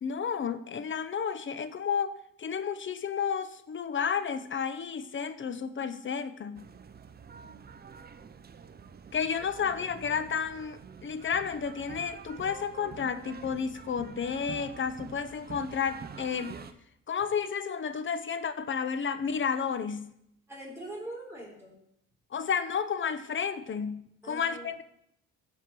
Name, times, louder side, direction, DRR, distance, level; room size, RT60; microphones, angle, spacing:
voice 1, 0.0-6.6 9.1-16.5 17.1-20.1 22.3-24.8, left 6 dB, 40° left, 12 dB, 0.8 m, -32 dB
sound 1, 6.5-16.7, right 6 dB, 30° right, 0.7 m, -47 dB
voice 2, 9.4-9.8 20.5-21.8 24.2-24.8, right 1 dB, 10° right, -5 dB, 3.9 m, -43 dB
14.5 x 4.9 x 4.7 m, 0.75 s
cardioid pair, 90°, 30 cm